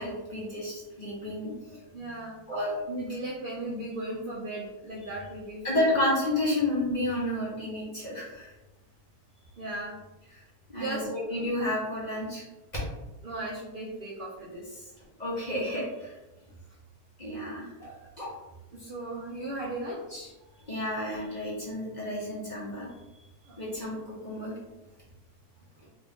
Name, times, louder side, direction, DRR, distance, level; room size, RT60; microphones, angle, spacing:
voice 1, 0.0-1.8 2.5-2.7 5.6-8.5 10.7-12.4 15.2-16.1 17.2-17.7 18.2-18.3 20.7-22.9 23.6-24.5, left 1 dB, 35° left, -6 dB, 0.7 m, -31 dB
voice 2, 1.9-2.4 2.9-6.0 9.6-9.9 10.8-11.1 13.2-14.9 17.8-17.9 18.7-20.3 23.5-23.9, right 1 dB, 65° right, -4 dB, 0.5 m, -37 dB
3.0 x 2.5 x 3.4 m, 1.0 s
omnidirectional pair, 1.6 m